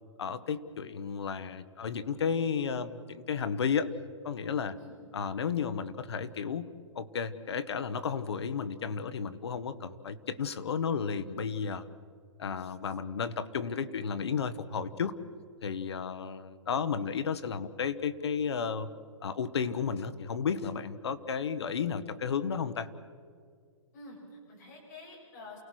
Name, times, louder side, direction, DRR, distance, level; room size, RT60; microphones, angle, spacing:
voice 1, 0.2-3.9 4.2-4.8 5.1-6.7 6.9-11.9 12.4-15.1 15.6-18.9 19.2-22.9, left 6 dB, 55° left, 12 dB, 1.1 m, -33 dB
voice 2, 23.9-25.6, left 2 dB, 30° left, -3 dB, 7.4 m, -48 dB
29.0 x 18.0 x 6.3 m, 2.1 s
hypercardioid pair, 180°, 16 cm